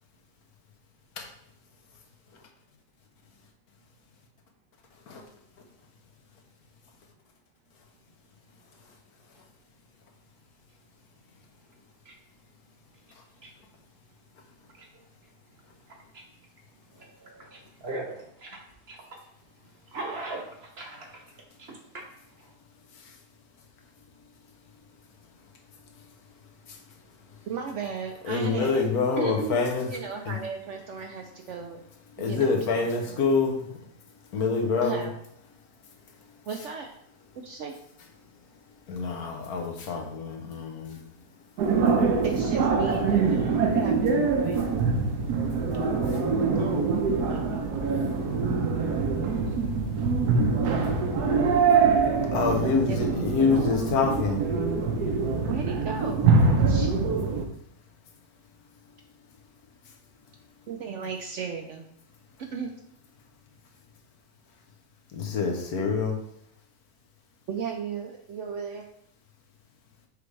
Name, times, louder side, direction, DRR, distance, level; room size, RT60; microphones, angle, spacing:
voice 1, 14.7-15.3 15.6-16.2 16.8-18.6 18.9-22.5, right 2 dB, 45° right, 1 dB, 1.1 m, -41 dB
voice 2, 27.5-28.8 29.2-31.8 32.2-33.2 34.8-35.1 36.5-36.9 37.4-37.7 42.2-44.6 46.6-47.0 47.3-48.2 52.6-53.0 53.4-54.0 55.5-56.9 60.7-61.9 62.4-62.7 67.5-68.9, right 6 dB, 65° right, 4 dB, 0.8 m, -36 dB
voice 3, 28.2-29.9 30.2-30.4 32.2-33.7 34.3-35.0 38.9-41.0 52.3-54.4 65.1-66.2, left 4 dB, 75° left, 2 dB, 1.5 m, -26 dB
sound 1, 41.6-57.5, right 4 dB, 80° right, 1.4 m, -24 dB
6.8 x 4.9 x 3.3 m, 0.73 s
omnidirectional pair, 1.6 m